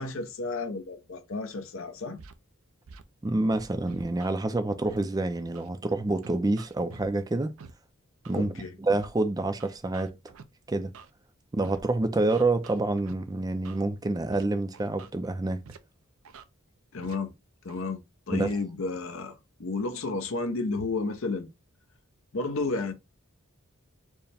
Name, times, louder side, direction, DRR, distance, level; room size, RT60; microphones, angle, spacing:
voice 1, 0.0-2.2 8.3-8.8 16.9-17.3 17.6-18.0 18.3-21.5 22.3-22.9, left 3 dB, 65° left, 0.7 m, -32 dB
Scratching (performance technique), 2.2-2.3 2.9-3.0 3.5-4.3 4.9-5.0 5.5-5.7 6.2-7.1 7.6-7.7 8.2-8.5 8.9-9.1 9.6-10.4 10.9-11.1 11.6-11.8 12.3-13.1 13.6-13.8 14.3-14.4 14.7-15.1 15.6-15.8 16.2-16.4 17.0-17.1 17.7-17.8 18.4-18.5, right 5 dB, 70° right, 0.5 m, -47 dB
voice 2, 3.2-7.5 8.3-10.1 10.7-10.9 11.5-15.6 18.3-18.5, right 2 dB, 20° right, 0.4 m, -27 dB
4.6 x 2.1 x 3.4 m
head